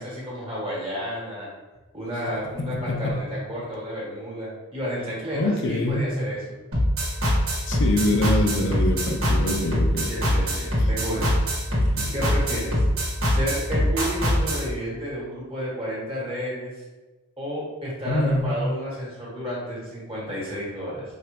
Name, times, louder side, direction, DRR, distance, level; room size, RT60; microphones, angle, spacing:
voice 1, 0.0-1.5 1.9-6.4 10.0-11.3 12.1-12.9 13.3-16.7 17.4-21.0, equal, 25° right, -7 dB, 1.5 m, -31 dB
voice 2, 2.6-3.1 5.3-6.0 7.7-10.1 11.8-12.1 18.1-18.5, left 1 dB, 55° left, 1 dB, 0.5 m, -25 dB
sound 1, 6.7-14.6, equal, 65° right, 1.4 m, -23 dB
4.9 x 2.4 x 2.9 m, 1.2 s
head